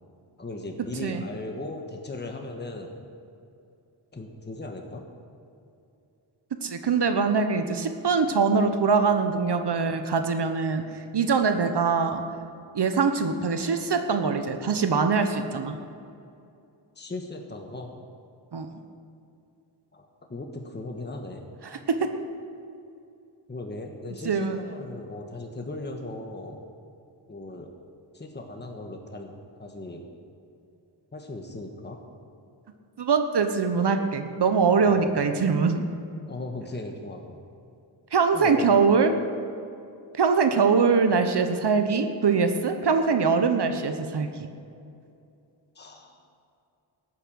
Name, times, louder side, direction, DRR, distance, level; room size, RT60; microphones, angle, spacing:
voice 1, 0.4-2.9 4.1-5.0 17.0-17.9 19.9-21.5 23.5-26.6 27.3-27.7 28.1-29.3 29.6-30.0 31.1-32.0 34.8-35.1 36.3-37.4 38.3-38.7 45.7-46.2, left 2 dB, 20° left, 2 dB, 1.4 m, -37 dB
voice 2, 6.6-12.2 12.7-15.8 18.5-18.7 21.6-22.1 24.2-24.6 33.0-35.9 38.1-39.2 40.1-44.5, right 5 dB, 55° right, 8 dB, 1.0 m, -23 dB
14.0 x 9.0 x 6.4 m, 2.6 s
wide cardioid pair, 85°, 48 cm